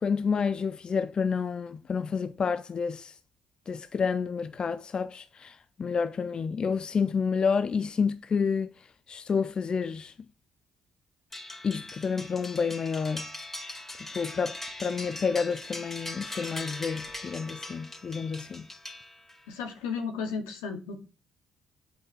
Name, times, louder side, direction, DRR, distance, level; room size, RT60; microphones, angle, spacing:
voice 1, 0.0-3.2 3.7-8.7 9.1-10.1 11.6-13.3 14.1-18.7, left 5 dB, 40° left, 0.6 m, -29 dB
sound 1, 11.3-19.5, left 2 dB, 15° left, 2.5 m, -41 dB
voice 2, 19.5-21.0, left 5 dB, 80° left, 2.2 m, -34 dB
8.0 x 5.6 x 7.2 m
hypercardioid pair, 50°, 2 cm